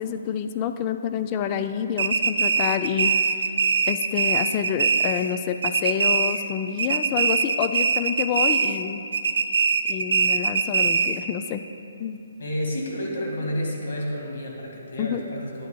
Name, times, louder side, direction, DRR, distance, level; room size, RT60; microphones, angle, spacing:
voice 1, 0.0-3.1 3.9-9.0 9.9-11.6 12.0-12.2 15.0-15.2, left 8 dB, 25° left, 9 dB, 0.3 m, -28 dB
sound 1, 2.0-5.4 5.6-6.5 6.8-8.8 9.1-11.3, right 5 dB, 70° right, 0.4 m, -22 dB
voice 2, 12.4-15.7, equal, 65° left, -1 dB, 1.9 m, -30 dB
10.5 x 8.2 x 2.3 m, 2.6 s
hypercardioid pair, 150°, 0 cm